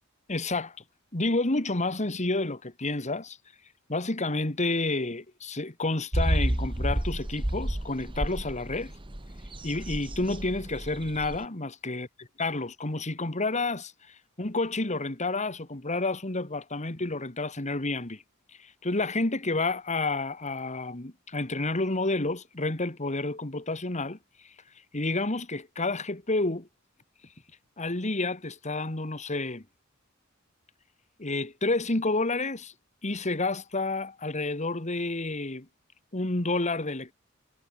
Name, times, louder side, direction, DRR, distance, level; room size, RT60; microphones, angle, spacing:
voice 1, 0.3-0.8 1.1-3.4 3.9-8.9 9.6-18.2 18.6-24.2 24.9-26.7 27.8-29.6 31.2-32.7 33.0-35.7 36.1-37.1, left 2 dB, 35° left, 2.1 m, -30 dB
sound 1, 6.1-11.4, right 1 dB, 25° right, 1.4 m, -31 dB
head